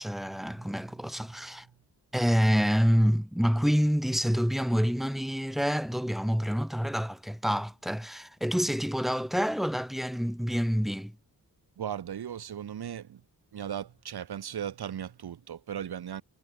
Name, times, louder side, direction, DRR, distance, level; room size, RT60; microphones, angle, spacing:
voice 1, 0.0-1.7 2.1-11.1, equal, ahead, 0.8 m, -27 dB
voice 2, 11.8-13.2 13.5-16.2, right 9 dB, 90° right, 3.8 m, -37 dB
cardioid pair, 70°, 37 cm